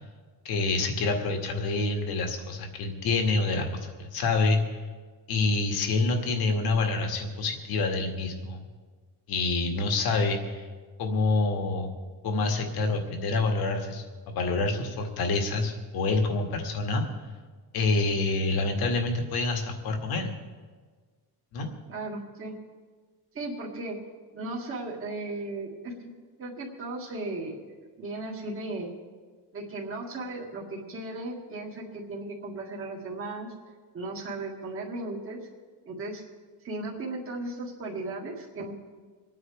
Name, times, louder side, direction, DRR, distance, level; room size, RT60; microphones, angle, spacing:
voice 1, 0.4-4.8 5.3-8.6 9.3-10.7 11.0-11.9 12.2-17.0 17.7-20.3 21.5-21.7, left 3 dB, 65° left, 3 dB, 2.0 m, -27 dB
voice 2, 21.9-22.5 23.3-24.0 24.3-25.9 26.4-27.7 28.0-28.9 29.5-33.5 33.9-35.4 35.9-36.2 36.6-38.7, right 2 dB, 30° right, -3 dB, 2.1 m, -36 dB
27.5 x 9.5 x 3.4 m, 1.5 s
cardioid pair, 160°, 41 cm